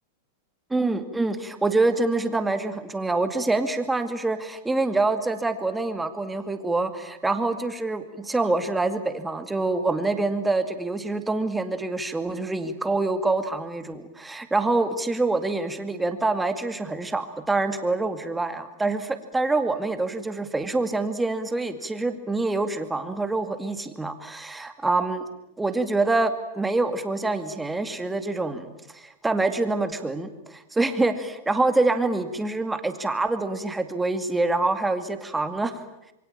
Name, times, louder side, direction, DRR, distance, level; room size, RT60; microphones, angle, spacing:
voice 1, 0.7-25.2 25.6-35.8, right 2 dB, 5° right, 8 dB, 2.3 m, -26 dB
27.0 x 23.5 x 8.9 m, 0.90 s
supercardioid pair, 140°, 0 cm